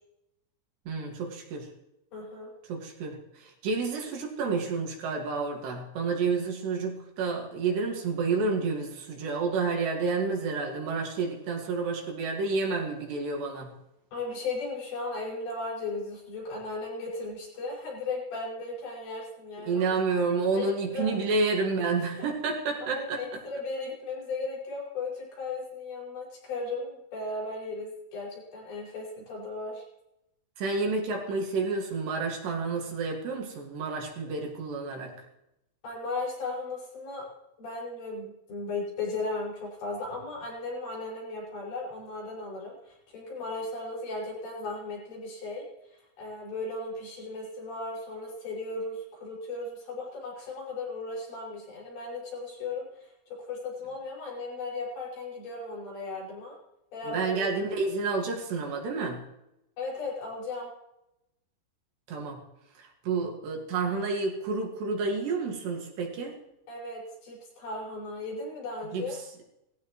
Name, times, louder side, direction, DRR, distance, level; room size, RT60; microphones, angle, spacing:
voice 1, 0.9-1.7 2.7-13.7 19.6-23.4 30.6-35.1 57.1-59.2 62.1-62.4 62.8-66.4 68.9-69.2, right 4 dB, 65° right, 1 dB, 4.2 m, -30 dB
voice 2, 2.1-2.5 14.1-19.9 20.6-21.1 22.8-29.8 35.8-37.3 37.6-45.7 46.2-53.1 53.5-56.6 56.9-57.4 59.8-60.7 66.7-69.2, left 3 dB, 65° left, -4 dB, 8.3 m, -36 dB
20.0 x 15.5 x 3.2 m, 0.87 s
omnidirectional pair, 5.4 m